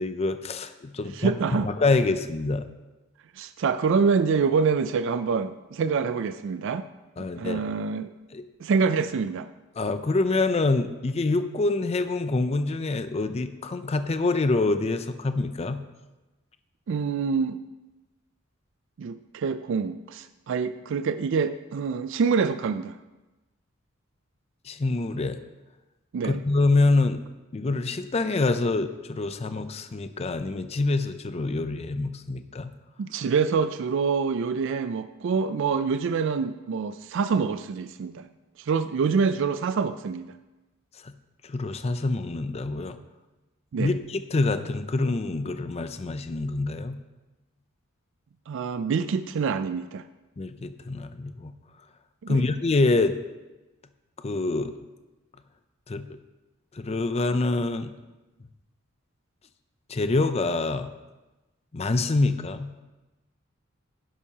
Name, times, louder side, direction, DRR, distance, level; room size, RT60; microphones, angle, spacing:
voice 1, 0.0-1.3 1.6-2.7 7.2-7.6 8.3-8.4 9.8-15.8 24.7-25.4 26.2-27.2 27.5-32.7 41.0-41.1 41.5-43.0 43.8-47.0 50.4-51.5 52.3-53.1 54.2-54.7 55.9-56.2 56.8-57.9 59.9-60.9 61.7-62.7, left 3 dB, 30° left, 10 dB, 0.5 m, -26 dB
voice 2, 1.1-1.7 3.4-6.9 7.4-8.1 8.6-9.5 16.9-17.6 19.0-23.0 26.1-26.4 33.0-38.3 38.6-40.3 43.7-43.9 48.5-50.0 52.2-52.4, right 5 dB, 65° right, 11 dB, 0.4 m, -26 dB
11.0 x 11.0 x 2.9 m, 1.1 s
head